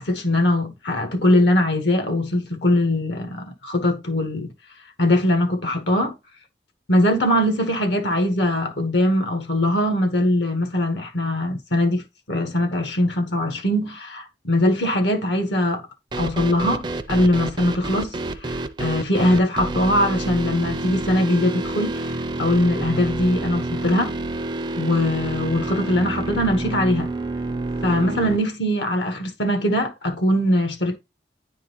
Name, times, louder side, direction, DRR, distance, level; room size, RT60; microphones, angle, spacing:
voice 1, 0.0-4.5 5.0-6.1 6.9-15.9 16.2-24.1 24.8-27.1 27.8-30.9, left 1 dB, 80° left, 1.2 m, -21 dB
sound 1, 16.1-28.4, right 2 dB, 25° right, 0.5 m, -28 dB
9.7 x 3.8 x 2.9 m
head